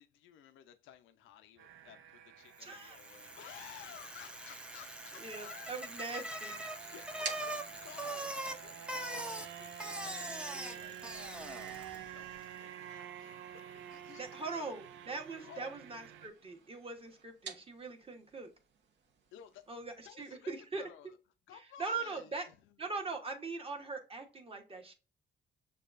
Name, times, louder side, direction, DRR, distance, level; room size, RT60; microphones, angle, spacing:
voice 1, 0.0-5.7 6.0-6.1 6.8-14.7 15.4-15.8 19.3-19.6 20.0-20.5 20.8-21.1 21.5-22.5, left 10 dB, 85° left, 0.5 m, -55 dB
sound 1, 1.6-16.3, right 10 dB, 80° right, 0.5 m, -50 dB
voice 2, 2.6-3.0 5.1-6.6 14.1-18.5 19.7-20.9 21.5-22.5 22.8-24.9, right 3 dB, 30° right, 1.2 m, -41 dB
Bicycle, 2.7-12.1, right 1 dB, 5° right, 0.6 m, -43 dB
sound 2, 5.7-20.1, right 6 dB, 60° right, 0.9 m, -53 dB
6.6 x 2.3 x 2.4 m
cardioid pair, 90°, 20 cm